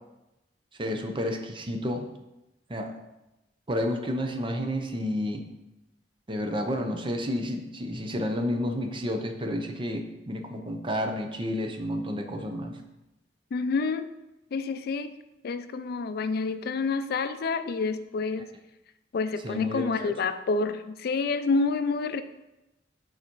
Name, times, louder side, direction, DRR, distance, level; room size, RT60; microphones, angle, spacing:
voice 1, 0.8-2.1 2.7-3.0 3.7-5.4 6.3-12.8 19.4-20.1, equal, 30° right, 5 dB, 0.7 m, -30 dB
voice 2, 13.5-14.1 14.5-15.1 15.4-18.5 19.1-22.2, left 4 dB, 60° left, 10 dB, 0.4 m, -28 dB
7.1 x 4.1 x 4.5 m, 0.96 s
head